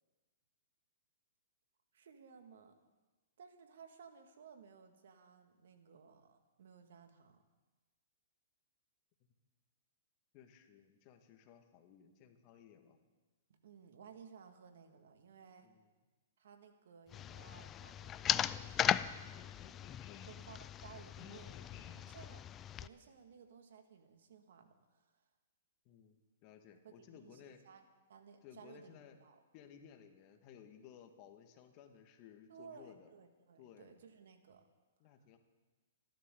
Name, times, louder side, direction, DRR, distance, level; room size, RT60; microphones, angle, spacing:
voice 1, 1.9-2.7 3.4-7.4 13.6-15.7 16.4-19.3 20.3-21.6 22.1-22.4 22.8-25.2 26.8-27.8 28.1-29.4 32.5-34.6, right 6 dB, 70° right, 6 dB, 2.0 m, -58 dB
voice 2, 10.3-13.0 15.6-15.9 19.3-20.3 21.2-22.0 25.9-27.6 28.4-29.2 29.5-33.1 33.6-33.9 35.0-35.4, left 8 dB, 40° left, 6 dB, 1.7 m, -58 dB
sound 1, 17.1-22.9, left 10 dB, 25° left, 0.4 m, -38 dB
25.5 x 12.0 x 3.9 m, 1.2 s
hypercardioid pair, 135°, 0 cm